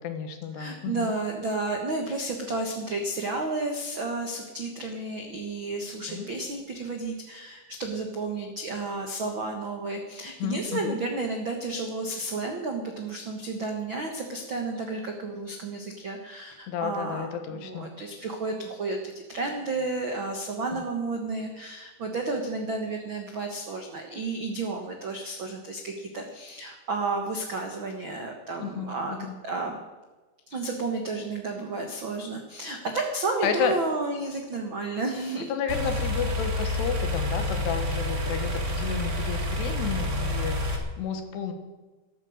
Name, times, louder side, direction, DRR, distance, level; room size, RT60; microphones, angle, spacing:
voice 1, 0.0-1.1 6.1-6.3 10.4-11.0 16.7-17.9 20.7-20.8 28.6-29.3 33.4-33.8 35.5-41.5, left 7 dB, 85° left, 6 dB, 3.7 m, -32 dB
voice 2, 0.6-29.2 29.4-29.8 30.5-35.5, right 3 dB, 85° right, 3 dB, 1.0 m, -32 dB
sound 1, 35.7-40.8, left 1 dB, 40° right, 1.0 m, -28 dB
14.0 x 13.0 x 6.6 m, 1.2 s
omnidirectional pair, 4.7 m